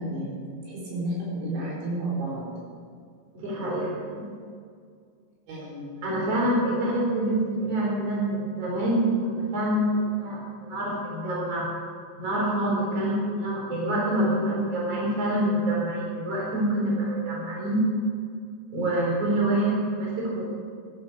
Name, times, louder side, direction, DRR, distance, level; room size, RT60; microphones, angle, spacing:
voice 1, 0.0-2.5 3.6-3.9 5.5-5.8 6.3-6.6, right 1 dB, 80° right, -5 dB, 6.5 m, -32 dB
voice 2, 3.3-3.8 4.1-4.2 6.0-11.7 12.2-17.8 18.7-20.4, right 1 dB, 35° right, -3 dB, 4.6 m, -26 dB
15.0 x 11.0 x 6.5 m, 2.2 s
omnidirectional pair, 5.2 m